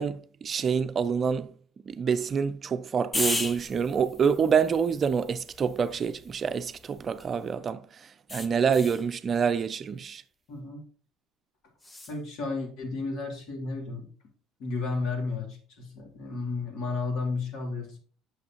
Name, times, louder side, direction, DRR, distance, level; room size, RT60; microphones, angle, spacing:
voice 1, 0.0-1.5 1.9-7.8 8.3-10.2, right 6 dB, 40° right, 0.5 m, -27 dB
sound 1, 3.1-7.5 8.3-9.1 11.8-12.2, left 1 dB, 20° left, 1.1 m, -36 dB
voice 2, 10.5-10.8 12.1-14.1 14.6-18.0, left 3 dB, 65° left, 2.9 m, -33 dB
8.7 x 6.4 x 3.0 m
hypercardioid pair, 65°, 0 cm